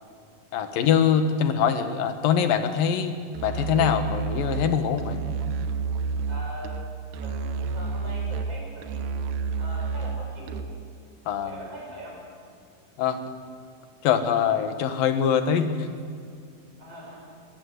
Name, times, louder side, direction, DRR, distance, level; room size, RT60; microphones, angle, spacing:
voice 1, 0.5-3.1 3.4-5.2 11.3-11.6 13.0-13.3 14.0-15.9, left 8 dB, 90° left, 8 dB, 3.1 m, -23 dB
voice 2, 1.5-1.8 6.3-6.8 7.2-9.0 9.6-10.6 11.4-12.2 16.8-17.2, equal, 45° right, -2 dB, 7.0 m, -42 dB
Musical instrument, 3.3-10.9, right 5 dB, 80° right, 2.6 m, -30 dB
21.5 x 20.0 x 8.0 m, 2.2 s
omnidirectional pair, 3.9 m